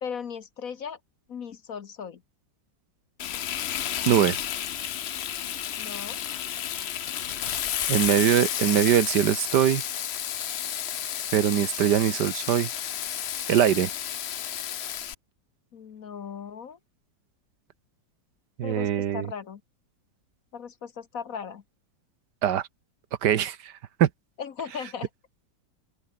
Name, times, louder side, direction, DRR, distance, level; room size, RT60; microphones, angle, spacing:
voice 1, 0.0-1.0 1.3-2.2 5.8-6.2 15.7-16.8 18.6-19.6 20.5-21.6 24.4-25.1, left 7 dB, 55° left, 1.4 m, -37 dB
Frying (food), 3.2-15.1, left 10 dB, 85° left, 0.5 m, -31 dB
voice 2, 4.1-4.4 7.9-9.8 11.3-12.7 13.5-13.9 18.6-19.3 22.4-22.6 23.2-23.7 24.0-24.1, right 10 dB, 65° right, 1.5 m, -22 dB
open air
omnidirectional pair, 2.0 m